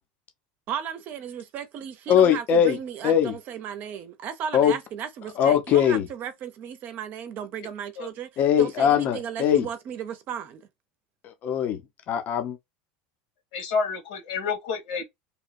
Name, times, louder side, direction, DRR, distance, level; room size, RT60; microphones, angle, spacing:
voice 1, 0.7-8.3 8.6-10.6, right 8 dB, 45° right, 0.6 m, -35 dB
voice 2, 2.1-2.8 3.0-3.3 4.5-4.8 5.4-6.1 8.4-9.7 11.2-11.8 12.1-12.6, left 9 dB, 45° left, 0.7 m, -21 dB
voice 3, 13.5-15.0, left 5 dB, 75° left, 1.5 m, -29 dB
2.9 x 2.2 x 2.5 m
supercardioid pair, 125°, 4 cm